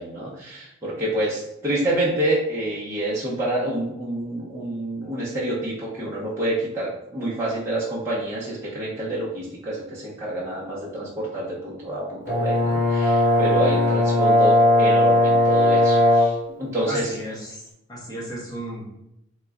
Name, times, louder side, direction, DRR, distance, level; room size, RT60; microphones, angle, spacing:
voice 1, 0.0-17.1, right 1 dB, 15° right, -9 dB, 0.6 m, -28 dB
Brass instrument, 12.3-16.4, left 1 dB, 65° left, 1.1 m, -18 dB
voice 2, 16.9-17.6 17.9-18.9, equal, 20° left, -5 dB, 0.8 m, -33 dB
2.9 x 2.2 x 3.5 m, 0.83 s
head